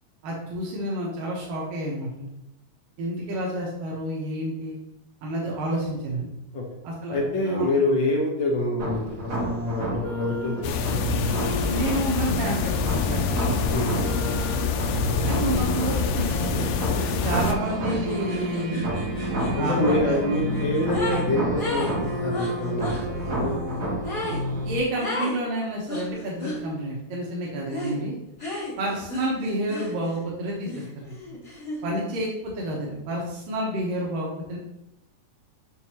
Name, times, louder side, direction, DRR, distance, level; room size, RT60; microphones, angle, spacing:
voice 1, 0.2-2.3 3.0-4.8 5.2-6.3 6.8-7.2 7.4-7.7 11.7-13.6 15.2-16.7 17.2-18.9 19.5-20.2 24.7-28.2 28.8-31.1 31.8-34.6, right 1 dB, 90° right, -4 dB, 3.0 m, -29 dB
voice 2, 7.1-9.1 9.4-10.7 13.7-14.2 16.9-17.2 19.5-23.6, left 2 dB, 55° left, -1 dB, 1.3 m, -26 dB
sound 1, 8.8-24.8, right 1 dB, 60° right, 0.8 m, -29 dB
sound 2, 10.6-17.5, left 6 dB, 85° left, 2.2 m, -26 dB
sound 3, 16.1-16.3 16.6-21.3 21.6-23.0 24.0-24.4 25.0-25.4 25.9-26.6 27.7-28.0 28.4-30.2 30.6-32.0, left 2 dB, 20° left, 1.4 m, -34 dB
6.8 x 6.7 x 3.0 m, 0.86 s
omnidirectional pair, 3.7 m